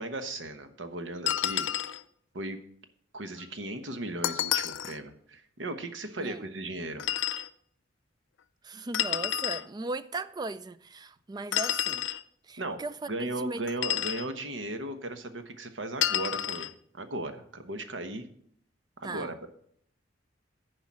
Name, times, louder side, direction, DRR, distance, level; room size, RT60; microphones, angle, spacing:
voice 1, 0.0-1.7 2.3-2.6 3.1-7.1 12.6-12.8 13.1-16.7 16.9-18.3 19.0-19.5, right 2 dB, 75° right, 1.1 m, -36 dB
sound 1, 1.3-2.0 4.2-5.0 7.0-7.5 8.9-9.6 11.5-12.2 13.7-14.3 16.0-16.7, left 12 dB, 75° left, 0.5 m, -29 dB
voice 2, 6.2-6.5 8.6-12.0 12.5-13.6 19.0-19.3, right 2 dB, 20° right, 0.4 m, -37 dB
10.0 x 5.0 x 7.4 m
head